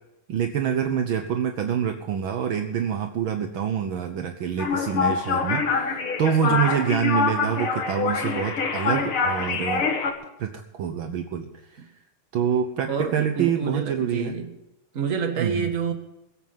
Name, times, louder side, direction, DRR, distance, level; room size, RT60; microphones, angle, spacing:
voice 1, 0.3-9.9 10.4-11.5 12.3-14.3 15.4-15.7, right 8 dB, 75° right, 6 dB, 1.2 m, -26 dB
sound 1, 4.6-10.1, left 5 dB, 50° left, 2.2 m, -25 dB
voice 2, 12.9-14.5 14.9-15.9, right 5 dB, 35° right, 5 dB, 1.4 m, -28 dB
21.0 x 8.4 x 5.6 m, 0.95 s
omnidirectional pair, 3.4 m